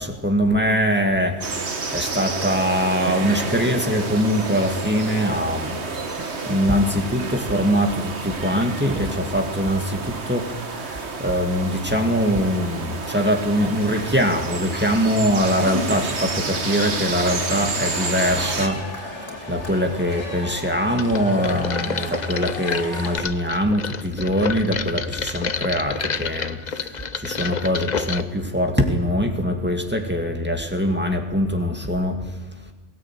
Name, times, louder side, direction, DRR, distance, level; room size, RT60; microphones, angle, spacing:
voice 1, 0.0-32.7, equal, 10° right, 3 dB, 2.2 m, -23 dB
sound 1, 1.4-18.7, right 4 dB, 65° right, 1.9 m, -30 dB
Cheering / Crowd, 15.6-23.2, left 1 dB, 80° left, 3.8 m, -34 dB
sound 2, 21.0-28.2, left 5 dB, 40° left, 0.9 m, -29 dB
21.5 x 17.5 x 9.2 m, 1.2 s
omnidirectional pair, 1.2 m